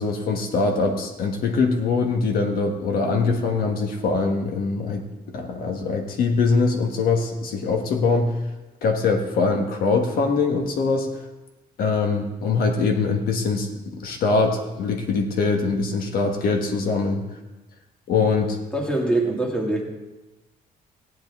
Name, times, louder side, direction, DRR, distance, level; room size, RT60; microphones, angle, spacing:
voice 1, 0.0-8.4 8.8-11.1 11.8-17.2 18.1-18.6, left 4 dB, 70° left, 4 dB, 1.3 m, -23 dB
voice 2, 18.7-19.8, right 2 dB, 5° left, -1 dB, 2.0 m, -23 dB
15.5 x 10.0 x 3.6 m, 1.1 s
cardioid pair, 145°, 16 cm